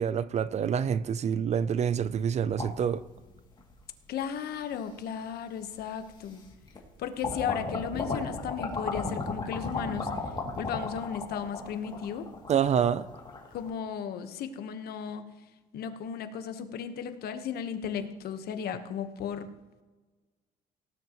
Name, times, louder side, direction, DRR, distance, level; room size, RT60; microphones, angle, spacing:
voice 1, 0.0-3.0 12.5-13.1, right 8 dB, 40° right, 0.5 m, -27 dB
sound 1, 2.6-3.7 4.5-4.6 5.8-5.9 6.3-6.9 7.2-13.7, left 3 dB, 25° left, 2.6 m, -35 dB
voice 2, 4.1-6.4 7.0-10.1 10.6-12.3 13.5-15.2 15.7-19.5, left 8 dB, 70° left, 1.2 m, -35 dB
18.0 x 10.0 x 3.1 m
cardioid pair, 110°, 17 cm